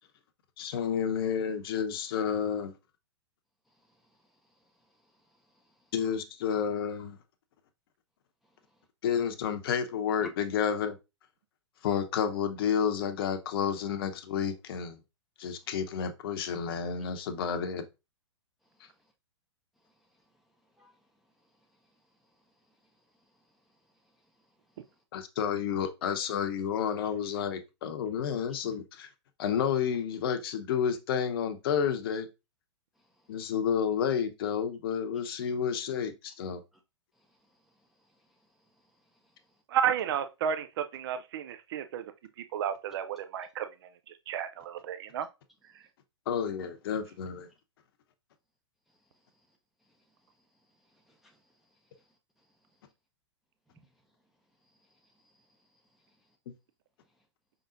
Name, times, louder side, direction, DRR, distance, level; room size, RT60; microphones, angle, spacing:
voice 1, 0.6-2.7 5.9-7.2 9.0-11.0 11.8-15.0 15.4-17.9 25.1-29.1 29.4-32.3 33.3-36.6 46.3-47.5, left 7 dB, 55° left, 0.8 m, -30 dB
voice 2, 3.7-5.9 8.4-8.9 10.2-10.3 15.5-15.7 18.6-19.1 19.8-25.0 33.0-33.5 36.7-36.8 37.1-39.6 45.7-45.9 48.9-52.9 53.7-53.9 54.6-56.4 57.0-57.2, right 2 dB, ahead, 0.6 m, -61 dB
voice 3, 39.7-42.0 42.5-43.7 44.1-45.3 45.7-45.8, right 9 dB, 55° right, 0.5 m, -32 dB
5.3 x 3.9 x 2.5 m
figure-of-eight pair, 110°, 15 cm